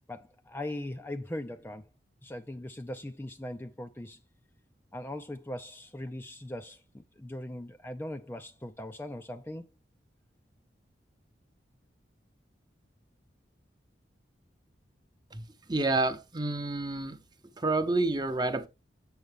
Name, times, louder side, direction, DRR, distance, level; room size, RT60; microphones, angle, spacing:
voice 1, 0.1-1.8 2.2-4.2 4.9-9.7, left 1 dB, 10° left, 0.4 m, -40 dB
voice 2, 15.3-17.2 17.6-18.7, right 2 dB, 25° right, 0.9 m, -29 dB
7.9 x 7.0 x 3.5 m
head